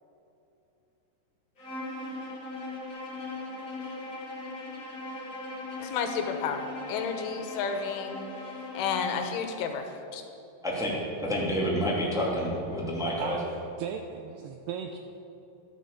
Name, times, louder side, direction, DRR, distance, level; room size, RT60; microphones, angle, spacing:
Bowed string instrument, 1.6-9.5, left 2 dB, 35° left, 1.4 m, -39 dB
voice 1, 5.8-8.2 8.8-10.2, left 6 dB, 90° left, 6 dB, 3.6 m, -31 dB
voice 2, 10.6-13.4, equal, ahead, -5 dB, 1.3 m, -29 dB
voice 3, 13.2-15.0, right 7 dB, 90° right, 5 dB, 2.3 m, -37 dB
13.5 x 12.0 x 7.0 m, 2.8 s
omnidirectional pair, 5.4 m